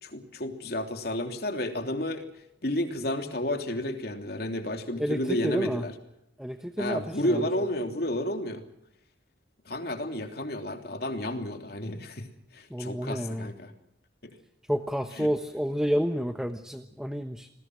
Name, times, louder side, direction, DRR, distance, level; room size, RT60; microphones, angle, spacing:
voice 1, 0.0-2.2 2.6-5.9 6.8-8.6 9.7-12.3 12.5-13.7 14.2-14.3 15.2-15.3, left 1 dB, 60° left, 5 dB, 3.3 m, -31 dB
voice 2, 5.0-5.9 6.4-7.5 12.7-13.6 14.7-17.5, equal, 5° right, 8 dB, 1.1 m, -30 dB
28.0 x 20.0 x 6.3 m, 0.80 s
head